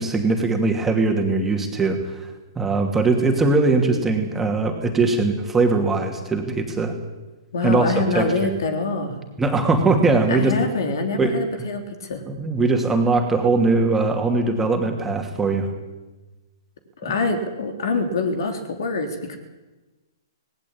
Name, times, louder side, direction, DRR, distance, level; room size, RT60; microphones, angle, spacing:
voice 1, 0.0-2.3 2.6-6.9 7.6-8.5 9.4-10.6 11.2-11.4 12.3-15.7 17.0-17.1, right 3 dB, 10° right, 3 dB, 2.7 m, -21 dB
voice 2, 7.5-9.2 10.3-12.2 17.0-19.4, left 3 dB, 65° left, 6 dB, 3.6 m, -25 dB
19.0 x 17.5 x 8.9 m, 1.1 s
hypercardioid pair, 120°, 2 cm